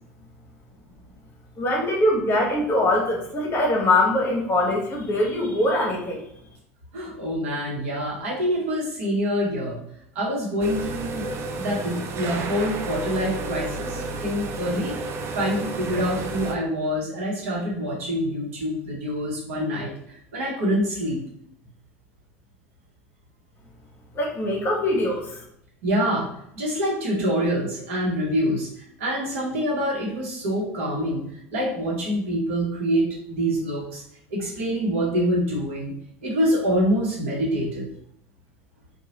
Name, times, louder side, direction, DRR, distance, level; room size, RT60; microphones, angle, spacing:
voice 1, 1.6-6.2 24.1-25.4, left 1 dB, 30° left, -1 dB, 0.9 m, -22 dB
voice 2, 6.9-9.8 10.1-11.3 11.6-14.9 15.3-21.2 25.8-26.3 26.5-31.2 31.5-34.0 34.3-35.9 36.2-37.9, equal, 60° right, -4 dB, 1.0 m, -26 dB
sound 1, 10.6-16.5, right 2 dB, 35° right, 0.4 m, -31 dB
2.9 x 2.3 x 2.8 m, 0.72 s
figure-of-eight pair, 70°, 8 cm